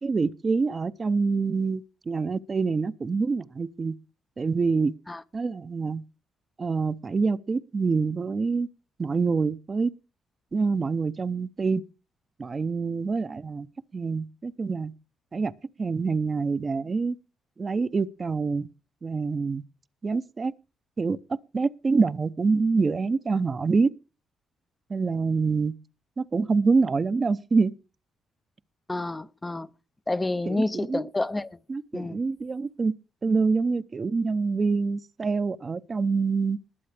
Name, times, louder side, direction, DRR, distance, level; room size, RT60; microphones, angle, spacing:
voice 1, 0.0-4.0 4.4-4.9 5.3-6.0 6.6-8.7 9.0-9.9 10.5-11.8 12.4-13.7 13.9-14.9 15.3-15.5 15.8-17.2 17.6-18.7 19.0-19.6 20.0-20.5 21.0-23.9 24.9-25.7 26.2-27.7 30.5-31.0 31.7-32.9 33.2-36.6, right 4 dB, 35° right, 0.6 m, -26 dB
voice 2, 28.9-29.7 30.1-31.6 31.9-32.2, left 2 dB, 15° left, 0.5 m, -29 dB
21.0 x 7.6 x 3.4 m
cardioid pair, 90°, 0 cm